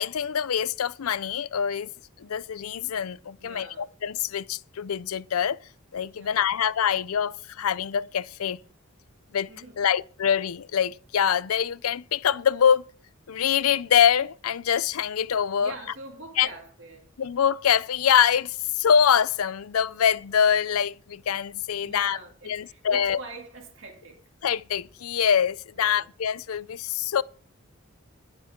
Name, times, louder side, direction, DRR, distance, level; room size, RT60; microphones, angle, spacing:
voice 1, 0.0-1.9 2.2-5.6 5.9-8.6 9.3-9.5 9.8-12.9 13.3-15.7 16.4-16.5 17.2-22.2 22.5-23.2 24.4-27.2, left 8 dB, 85° left, 0.5 m, -24 dB
voice 2, 3.4-3.9 6.1-6.4 9.5-9.9 15.6-17.1 21.8-24.2 25.7-26.1, right 2 dB, 55° right, 2.6 m, -44 dB
22.0 x 7.3 x 3.7 m
head